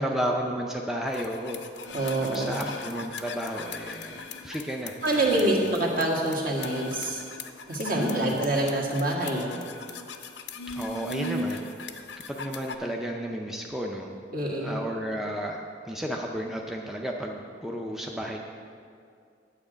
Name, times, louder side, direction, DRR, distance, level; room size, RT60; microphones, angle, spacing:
voice 1, 0.0-1.6 2.2-5.7 7.9-8.4 10.7-11.7 12.3-14.1 14.6-15.6 15.9-18.4, equal, ahead, 0 dB, 0.5 m, -33 dB
sound 1, 1.1-12.8, left 3 dB, 85° left, 0.6 m, -38 dB
voice 2, 1.9-2.6 5.0-7.2 7.7-9.5 14.3-14.8, right 1 dB, 50° right, -1 dB, 1.5 m, -26 dB
9.6 x 7.6 x 5.0 m, 2.3 s
head